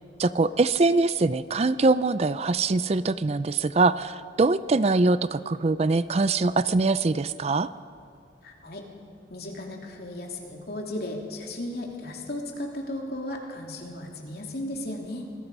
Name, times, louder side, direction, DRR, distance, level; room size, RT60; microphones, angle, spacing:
voice 1, 0.2-7.7, right 3 dB, 35° right, 15 dB, 0.4 m, -23 dB
voice 2, 8.4-8.8 9.3-15.2, left 1 dB, 55° left, 0 dB, 3.1 m, -35 dB
27.0 x 19.5 x 5.5 m, 2.3 s
head